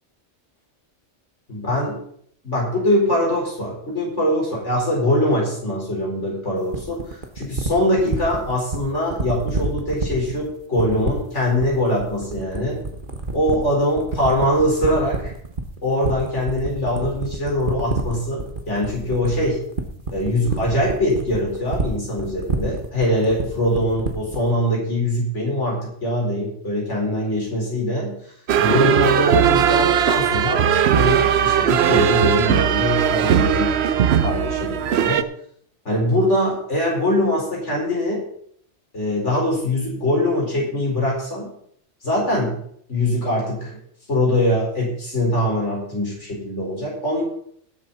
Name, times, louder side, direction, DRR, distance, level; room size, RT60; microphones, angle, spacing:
voice 1, 1.5-2.0 2.4-12.8 13.3-15.2 15.8-19.6 20.1-28.2 28.6-33.8 34.2-35.3 35.8-38.3 38.9-41.5 42.0-42.6 42.9-43.8 44.1-47.2, left 1 dB, 75° left, -3 dB, 4.6 m, -22 dB
sound 1, 6.7-24.5, right 3 dB, 45° right, 1.5 m, -27 dB
sound 2, 28.5-35.2, right 9 dB, 65° right, 0.9 m, -18 dB
18.5 x 7.7 x 4.1 m, 0.64 s
omnidirectional pair, 1.2 m